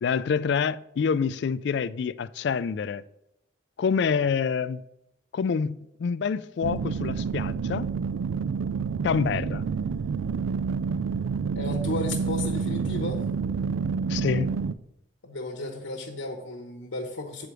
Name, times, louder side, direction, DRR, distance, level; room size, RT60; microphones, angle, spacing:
voice 1, 0.0-3.0 3.8-4.8 5.3-7.9 9.0-9.6 14.1-14.6, left 6 dB, 60° left, 0.3 m, -27 dB
sound 1, 6.6-14.7, right 5 dB, 90° right, 0.3 m, -28 dB
voice 2, 11.5-13.3 15.2-17.5, left 2 dB, 85° left, 1.1 m, -34 dB
7.9 x 4.9 x 6.1 m
head